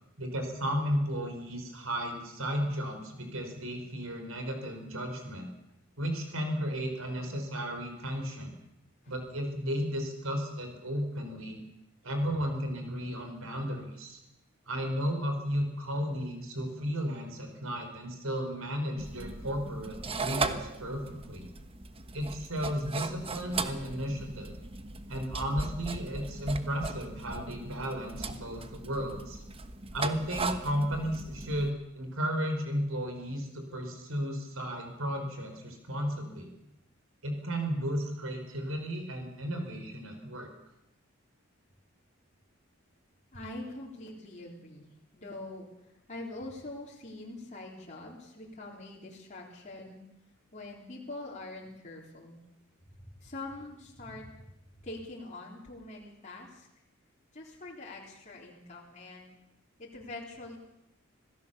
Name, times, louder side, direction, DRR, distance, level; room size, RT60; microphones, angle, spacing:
voice 1, 0.2-5.5 6.0-8.5 9.1-11.6 12.0-14.2 14.7-21.5 22.1-24.5 25.1-29.4 29.9-36.5 37.2-40.5, equal, 85° right, 5 dB, 4.9 m, -34 dB
sound 1, 19.0-31.7, right 3 dB, 30° right, 1.2 m, -38 dB
voice 2, 43.3-45.7 46.1-50.0 50.5-52.4 53.2-54.3 54.8-56.7 57.3-59.3 59.8-60.6, left 2 dB, 35° left, -3 dB, 4.0 m, -44 dB
26.0 x 17.0 x 7.1 m, 0.89 s
head